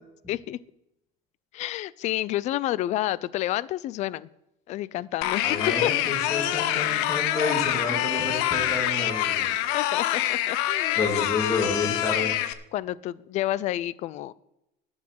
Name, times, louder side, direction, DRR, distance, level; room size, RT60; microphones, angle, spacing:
voice 1, 0.3-0.6 1.5-4.3 4.7-5.4 5.8-5.9 9.7-11.0 12.7-14.3, left 14 dB, 35° left, 20 dB, 0.4 m, -29 dB
sound 1, 5.2-12.5, left 13 dB, 85° left, 0.9 m, -26 dB
voice 2, 5.4-9.5 11.0-12.4, left 3 dB, 15° left, 0 dB, 2.8 m, -29 dB
11.5 x 6.2 x 7.7 m, 0.87 s
cardioid pair, 170°, 20 cm